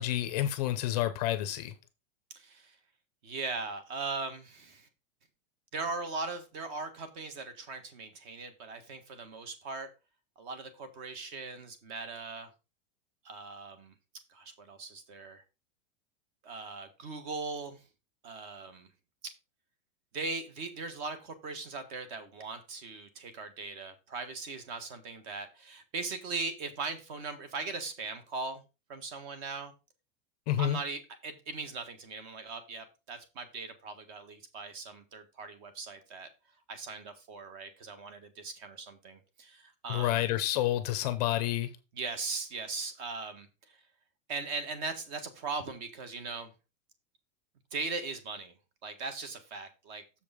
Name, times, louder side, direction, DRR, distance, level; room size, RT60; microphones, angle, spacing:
voice 1, 0.0-1.7 30.5-30.8 39.9-41.7, left 13 dB, 35° left, 0.6 m, -29 dB
voice 2, 2.3-2.8 3.2-4.9 5.7-9.9 10.4-12.5 13.2-13.9 14.3-15.4 16.4-17.9 18.2-18.9 19.2-19.3 20.1-28.6 28.9-29.7 30.6-36.3 36.7-40.2 41.9-43.8 44.3-46.5 47.7-50.0, right 4 dB, 35° right, 1.5 m, -39 dB
7.1 x 5.1 x 5.0 m
supercardioid pair, 175°, 37 cm